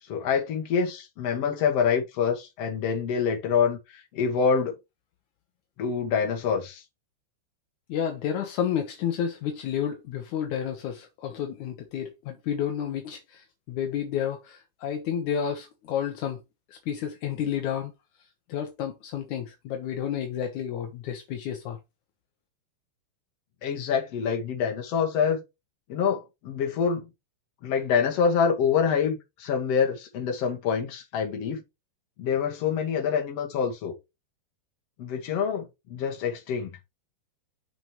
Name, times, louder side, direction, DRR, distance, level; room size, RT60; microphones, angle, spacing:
voice 1, 0.0-4.8 5.8-6.8 23.6-25.4 25.9-27.1 27.6-31.6 32.2-33.9 35.0-36.8, left 6 dB, 50° left, 2.0 m, -26 dB
voice 2, 7.9-16.4 16.7-17.9 18.5-21.8, left 9 dB, 75° left, 1.8 m, -31 dB
6.9 x 6.3 x 3.1 m
omnidirectional pair, 4.9 m